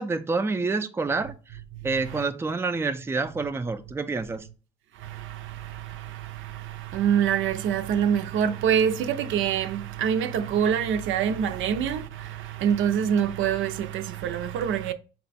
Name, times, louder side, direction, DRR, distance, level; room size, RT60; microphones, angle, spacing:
voice 1, 0.0-1.3 1.8-4.5, right 3 dB, 10° right, 0.4 m, -27 dB
voice 2, 1.9-2.2 5.0-14.9, right 8 dB, 80° right, 0.5 m, -26 dB
4.2 x 2.2 x 4.0 m
cardioid pair, 90°, 20 cm